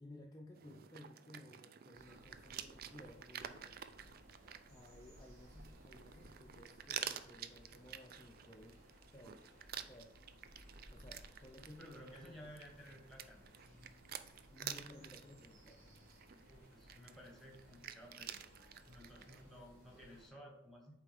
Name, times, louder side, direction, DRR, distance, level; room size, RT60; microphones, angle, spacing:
voice 1, 0.0-3.8 4.7-8.8 9.1-9.4 9.9-10.2 10.9-12.5 14.1-16.0, left 1 dB, 20° left, -1 dB, 0.5 m, -57 dB
sound 1, 0.5-19.4, right 9 dB, 50° right, 0.3 m, -51 dB
sound 2, 1.9-20.3, equal, 85° right, 1.8 m, -62 dB
voice 2, 11.8-13.5 16.5-18.4 18.9-21.0, equal, ahead, 0 dB, 1.2 m, -56 dB
8.4 x 3.4 x 3.5 m, 0.81 s
head